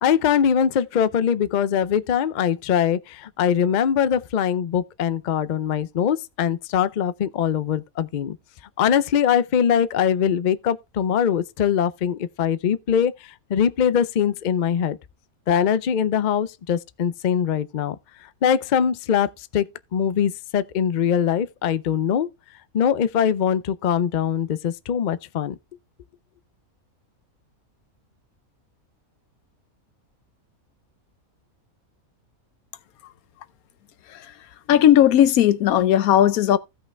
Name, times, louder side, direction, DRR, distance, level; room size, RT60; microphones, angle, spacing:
voice 1, 0.0-8.4 8.8-15.0 15.5-18.0 18.2-19.7 19.9-22.3 22.7-25.5, left 8 dB, 55° left, 0.5 m, -22 dB
voice 2, 34.1-36.6, left 11 dB, 85° left, 1.2 m, -17 dB
15.5 x 5.7 x 3.3 m
omnidirectional pair, 1.5 m